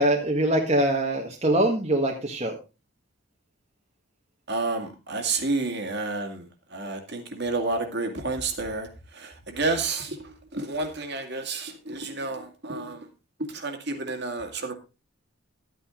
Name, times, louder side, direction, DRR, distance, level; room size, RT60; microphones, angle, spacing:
voice 1, 0.0-2.5, right 1 dB, 30° right, 0 dB, 1.6 m, -23 dB
voice 2, 4.5-13.1 13.5-14.7, right 3 dB, 50° right, 4 dB, 2.2 m, -30 dB
12.5 x 9.1 x 3.7 m, 0.29 s
head